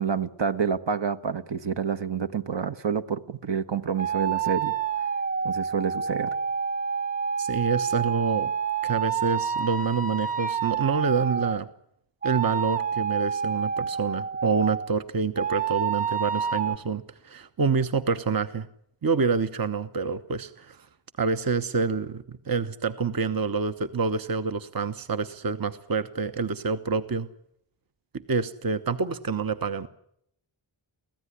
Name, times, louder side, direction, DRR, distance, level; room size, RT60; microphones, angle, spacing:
voice 1, 0.0-4.7 5.4-6.3, right 6 dB, 65° right, 1.3 m, -28 dB
sound 1, 4.0-11.6 12.2-14.9 15.4-16.8, right 7 dB, 15° right, 0.9 m, -28 dB
voice 2, 7.4-8.5 8.8-11.7 12.2-18.7 19.0-20.9 21.2-27.3 28.1-29.9, right 5 dB, 50° right, 1.1 m, -27 dB
24.5 x 16.5 x 9.8 m
wide cardioid pair, 100°, 47 cm